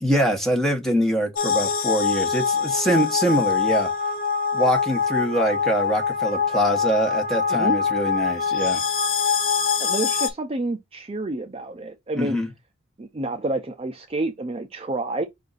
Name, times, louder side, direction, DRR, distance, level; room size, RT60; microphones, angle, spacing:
voice 1, 0.0-3.9 4.5-8.8 12.2-12.5, right 1 dB, ahead, 1.0 m, -24 dB
sound 1, 1.4-10.3, left 6 dB, 45° left, 0.8 m, -24 dB
voice 2, 9.8-12.4 13.0-15.2, right 2 dB, 30° right, 0.5 m, -29 dB
5.5 x 2.5 x 3.9 m
head